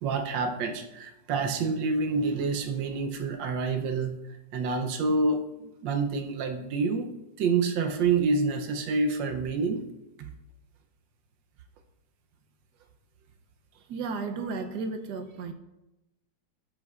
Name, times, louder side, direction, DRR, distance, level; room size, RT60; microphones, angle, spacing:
voice 1, 0.0-4.1 4.5-9.9 10.2-10.3, right 4 dB, 85° right, 4 dB, 1.5 m, -28 dB
voice 2, 13.9-15.5, right 4 dB, 70° right, 7 dB, 1.2 m, -33 dB
12.0 x 7.8 x 2.4 m, 0.95 s
omnidirectional pair, 1.9 m